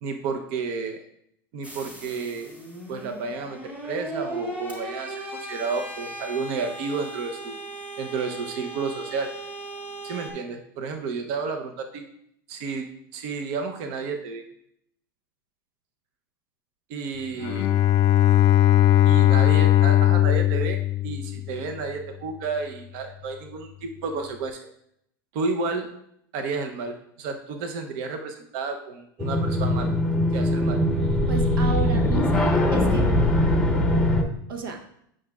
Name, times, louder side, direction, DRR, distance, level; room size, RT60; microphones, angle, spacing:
voice 1, 0.0-1.0 1.5-2.5 2.9-7.5 8.0-9.4 10.0-12.0 12.5-12.9 13.1-14.4 16.9-17.7 19.1-24.6 25.3-25.9 26.3-30.0 30.3-30.8, right 4 dB, 55° right, 5 dB, 0.8 m, -31 dB
sound 1, 1.6-10.3, right 1 dB, 10° right, 1.4 m, -37 dB
Bowed string instrument, 17.4-21.7, left 13 dB, 40° left, 0.4 m, -19 dB
sound 2, 29.2-34.2, left 1 dB, 5° left, 0.8 m, -21 dB
voice 2, 31.3-33.1 34.5-34.8, right 4 dB, 85° right, 5 dB, 0.9 m, -32 dB
8.6 x 6.1 x 2.4 m, 0.73 s
supercardioid pair, 130°, 11 cm